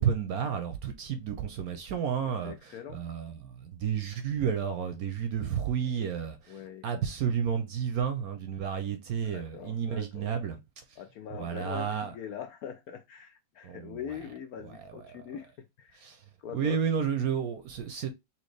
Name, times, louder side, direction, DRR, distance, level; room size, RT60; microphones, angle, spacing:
voice 1, 0.0-6.4 6.8-10.6 11.3-12.1 13.6-14.0 16.0-16.2 16.5-18.1, right 7 dB, 65° right, 1.0 m, -31 dB
voice 2, 2.2-3.0 6.5-6.8 9.2-10.3 11.0-16.0 16.4-16.8, left 8 dB, 70° left, 0.9 m, -42 dB
4.3 x 3.1 x 3.2 m
omnidirectional pair, 2.0 m